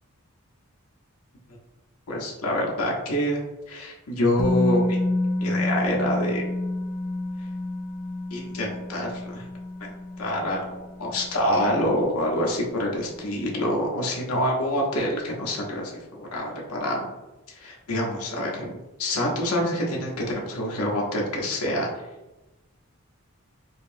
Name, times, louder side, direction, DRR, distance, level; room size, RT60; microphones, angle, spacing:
voice 1, 2.1-3.4 3.7-5.0 5.4-6.5 8.3-9.5 9.8-9.9 10.2-17.1 17.5-21.9, equal, 80° left, -2 dB, 0.7 m, -26 dB
Musical instrument, 4.4-12.3 12.6-12.7, left 2 dB, 40° left, 0.4 m, -29 dB
5.0 x 2.0 x 2.6 m, 1.0 s
head